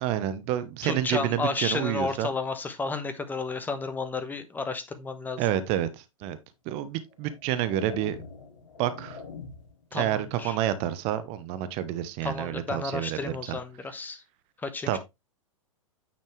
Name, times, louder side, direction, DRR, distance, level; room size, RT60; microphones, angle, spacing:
voice 1, 0.0-2.3 5.4-6.4 6.7-8.2 8.8-9.2 9.9-13.6 14.9-15.0, right 11 dB, 35° right, 0.9 m, -29 dB
voice 2, 0.8-5.4 9.9-10.6 12.2-14.2 14.6-15.0, left 4 dB, 10° left, 1.0 m, -32 dB
sound 1, 6.2-6.4 7.1-9.9, left 5 dB, 60° left, 1.8 m, -44 dB
9.3 x 4.3 x 3.2 m
figure-of-eight pair, 100°, 18 cm